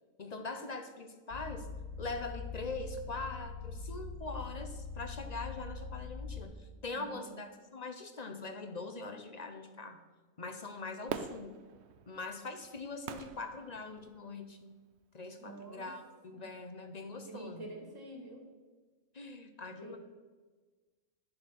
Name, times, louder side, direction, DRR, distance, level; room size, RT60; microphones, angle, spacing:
voice 1, 0.2-1.7 2.0-10.0 10.4-11.6 12.1-14.8 15.1-17.7 19.1-20.0, left 3 dB, 40° left, 8 dB, 0.7 m, -42 dB
sound 1, 1.3-6.4, left 4 dB, 85° left, 2.0 m, -43 dB
voice 2, 6.9-7.3 15.4-15.9 16.3-16.5 17.1-18.4 19.7-20.0, right 2 dB, 15° right, 1 dB, 2.0 m, -48 dB
Fireworks, 11.1-14.4 15.0-15.1, right 7 dB, 60° right, 0.8 m, -44 dB
11.5 x 7.7 x 6.0 m, 1.4 s
omnidirectional pair, 1.5 m